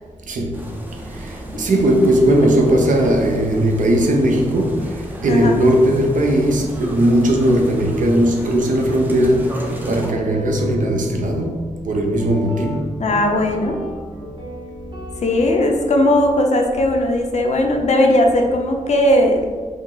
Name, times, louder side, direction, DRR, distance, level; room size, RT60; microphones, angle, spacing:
voice 1, 0.3-0.6 1.1-12.9, right 1 dB, 75° right, 2 dB, 0.6 m, -18 dB
sound 1, 0.5-10.1, right 1 dB, 15° right, 0.5 m, -33 dB
Guitar, 9.8-17.9, right 1 dB, 30° right, 1.0 m, -36 dB
voice 2, 13.0-13.8 15.2-19.6, left 1 dB, 60° left, 3 dB, 0.5 m, -17 dB
5.1 x 2.0 x 3.7 m, 1.5 s
wide cardioid pair, 145°, 14 cm